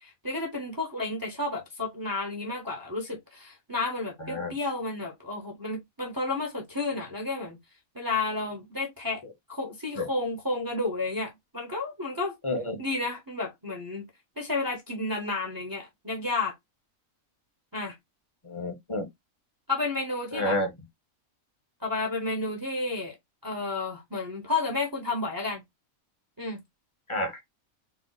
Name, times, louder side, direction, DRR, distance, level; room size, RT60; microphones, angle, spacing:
voice 1, 0.0-7.6 7.9-9.2 9.5-12.3 12.8-14.1 14.4-16.5 17.7-17.9 19.7-20.6 21.8-23.1 23.4-25.6 26.4-26.6, left 3 dB, 15° right, 1.0 m, -31 dB
voice 2, 12.4-12.8 18.4-19.1 20.3-20.7 27.1-27.4, left 1 dB, 25° left, 1.1 m, -29 dB
4.1 x 2.4 x 4.0 m
omnidirectional pair, 1.5 m